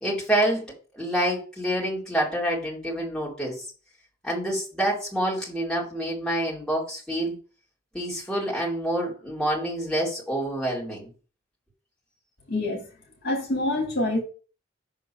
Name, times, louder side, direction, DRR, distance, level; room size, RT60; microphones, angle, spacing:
voice 1, 0.0-0.7 0.9-3.6 4.2-7.4 7.9-11.1, right 1 dB, 5° left, 2.4 m, -27 dB
voice 2, 12.5-12.8 13.2-14.2, left 2 dB, 50° left, 1.8 m, -26 dB
5.7 x 3.7 x 5.6 m
head